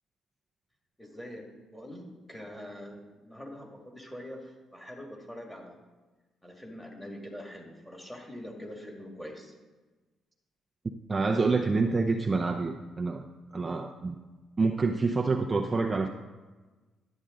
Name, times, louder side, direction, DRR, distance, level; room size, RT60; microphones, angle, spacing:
voice 1, 1.0-1.5 1.7-5.8 6.4-9.6, equal, 5° left, 1 dB, 2.0 m, -44 dB
voice 2, 11.1-13.2 13.5-14.2 14.6-16.1, right 3 dB, 25° right, 3 dB, 0.6 m, -27 dB
11.5 x 8.2 x 3.8 m, 1.3 s
cardioid pair, 90°, 0 cm